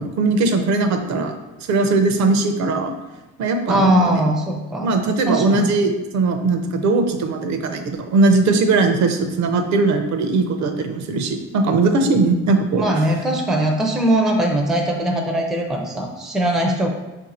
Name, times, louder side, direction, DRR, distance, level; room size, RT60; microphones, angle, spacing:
voice 1, 0.0-1.3 1.6-2.9 3.4-4.2 4.8-13.1, right 3 dB, 65° right, 6 dB, 0.6 m, -19 dB
voice 2, 3.7-4.9 5.3-5.7 12.8-16.9, right 1 dB, ahead, 1 dB, 0.4 m, -20 dB
4.4 x 2.6 x 4.1 m, 1.1 s
cardioid pair, 145°, 30 cm